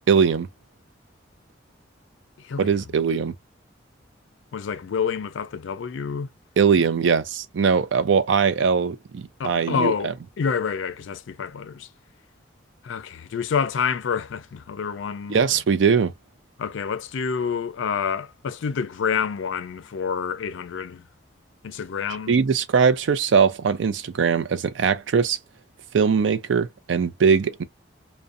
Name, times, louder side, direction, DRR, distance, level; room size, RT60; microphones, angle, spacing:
voice 1, 0.1-0.5 2.6-3.3 6.6-10.1 15.3-16.1 22.3-25.4 25.9-27.6, right 6 dB, 70° right, 0.4 m, -21 dB
voice 2, 4.5-6.3 9.4-10.1 10.4-11.9 12.8-15.4 16.6-21.0 21.6-22.4, left 6 dB, 75° left, 0.4 m, -28 dB
2.5 x 2.1 x 2.4 m
head